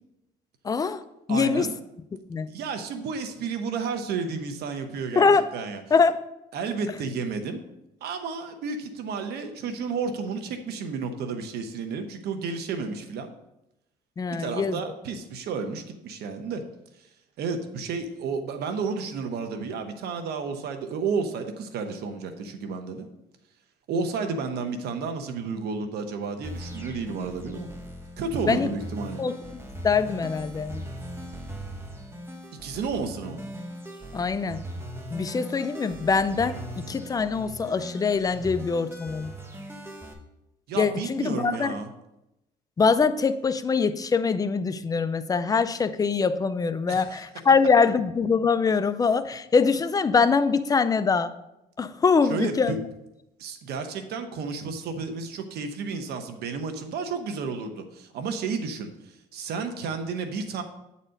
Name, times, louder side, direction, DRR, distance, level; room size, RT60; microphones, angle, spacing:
voice 1, 0.6-1.0 1.3-1.7 2.3-2.5 5.2-5.5 5.9-6.2 14.2-14.8 28.5-28.7 29.2-29.3 29.8-30.8 34.1-34.6 35.1-39.3 40.7-41.7 42.8-51.3 51.8-52.8, left 5 dB, 20° left, 12 dB, 0.4 m, -23 dB
voice 2, 1.3-1.7 2.5-5.3 5.5-5.8 6.5-7.6 8.0-13.3 14.4-16.6 17.4-23.1 23.9-27.7 28.2-29.2 32.6-33.4 40.7-41.9 46.9-47.2 52.2-52.8 53.4-60.6, right 5 dB, 75° right, 7 dB, 1.0 m, -32 dB
sound 1, 26.4-40.1, equal, 15° right, 1.1 m, -39 dB
8.9 x 4.2 x 5.2 m, 0.89 s
cardioid pair, 110°, 17 cm